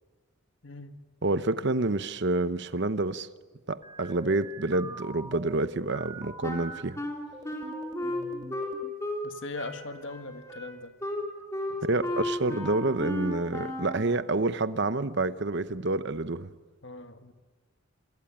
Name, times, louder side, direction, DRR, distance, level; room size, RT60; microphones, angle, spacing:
voice 1, 0.6-1.0 8.0-8.6 9.2-10.9 11.7-12.3 16.8-17.3, left 2 dB, 60° left, 8 dB, 1.7 m, -41 dB
voice 2, 1.2-3.3 3.7-7.0 11.8-16.5, right 2 dB, 55° right, 13 dB, 0.9 m, -28 dB
sound 1, 3.8-6.8 7.3-8.9, right 3 dB, 20° right, 2.0 m, -44 dB
Wind instrument woodwind instrument, 6.4-9.3 9.6-14.1, left 1 dB, 15° left, 3.7 m, -34 dB
27.0 x 22.5 x 8.9 m, 1.3 s
head